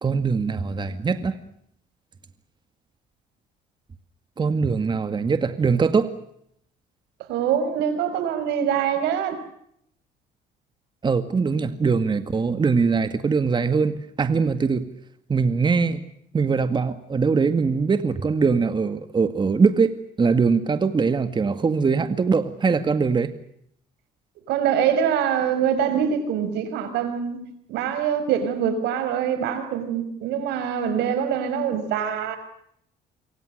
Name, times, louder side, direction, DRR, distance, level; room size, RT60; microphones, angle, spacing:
voice 1, 0.0-1.4 4.4-6.1 11.0-14.9 15.3-16.0 16.3-23.3, right 5 dB, 25° right, 2.0 m, -22 dB
voice 2, 7.3-9.4 24.5-32.4, right 8 dB, 90° right, 5.6 m, -24 dB
28.0 x 24.5 x 6.6 m
cardioid pair, 110°, 17 cm